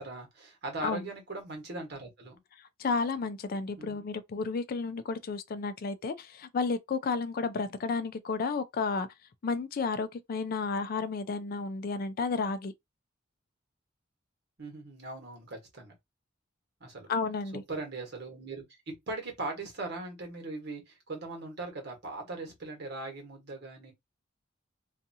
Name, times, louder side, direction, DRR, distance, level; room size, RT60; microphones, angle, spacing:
voice 1, 0.0-2.4 3.8-4.0 14.6-15.9 16.8-17.1 17.5-23.9, right 2 dB, 60° right, 1.2 m, -40 dB
voice 2, 2.6-9.1 9.4-12.7 17.1-17.6, left 4 dB, 50° left, 0.4 m, -32 dB
2.7 x 2.4 x 2.6 m
head